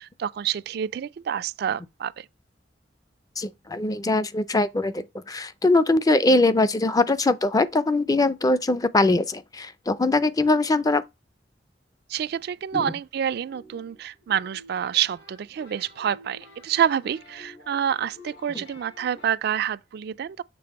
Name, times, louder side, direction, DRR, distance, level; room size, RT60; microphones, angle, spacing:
voice 1, 0.0-2.3 12.1-20.4, right 9 dB, 60° right, 0.3 m, -28 dB
voice 2, 3.4-11.0 12.7-12.9, left 2 dB, 20° left, 0.4 m, -22 dB
sound 1, 13.4-19.4, left 1 dB, 85° left, 4.2 m, -50 dB
6.9 x 4.0 x 4.1 m
head